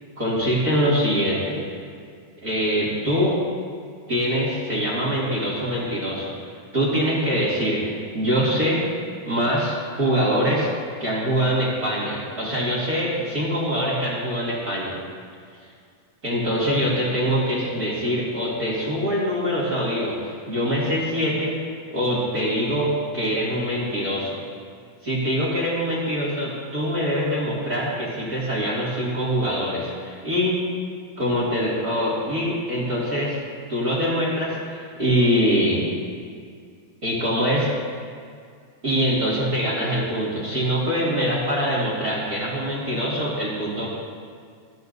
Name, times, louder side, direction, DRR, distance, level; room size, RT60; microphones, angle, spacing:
voice 1, 0.2-1.6 2.4-3.4 4.1-6.3 6.7-8.8 9.3-10.7 11.0-15.0 16.2-21.6 21.9-24.4 25.0-30.6 31.2-33.4 33.7-35.9 37.0-37.7 38.8-43.9, equal, 30° right, -5 dB, 1.8 m, -24 dB
29.5 x 11.5 x 2.7 m, 2.2 s
omnidirectional pair, 5.6 m